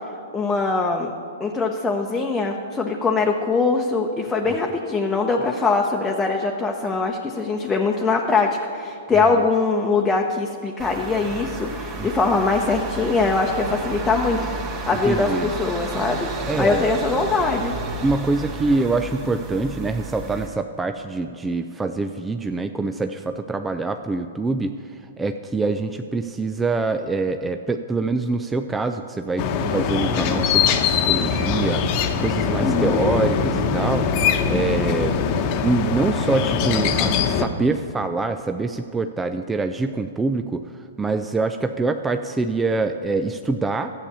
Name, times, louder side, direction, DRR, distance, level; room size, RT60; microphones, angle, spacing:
voice 1, 0.3-1.1 1.4-16.3 16.6-17.8 32.6-33.1, left 4 dB, 10° left, 0 dB, 1.0 m, -22 dB
sound 1, 10.8-20.5, right 3 dB, 35° right, 2.0 m, -32 dB
voice 2, 15.0-15.5 16.5-17.0 18.0-24.8 25.2-31.8 32.2-34.1 34.5-35.3 35.5-43.9, right 3 dB, 10° right, 7 dB, 0.5 m, -25 dB
sound 2, 29.4-37.5, left 6 dB, 40° left, 1.1 m, -22 dB
13.0 x 8.4 x 6.9 m, 2.4 s
figure-of-eight pair, 110°, 0 cm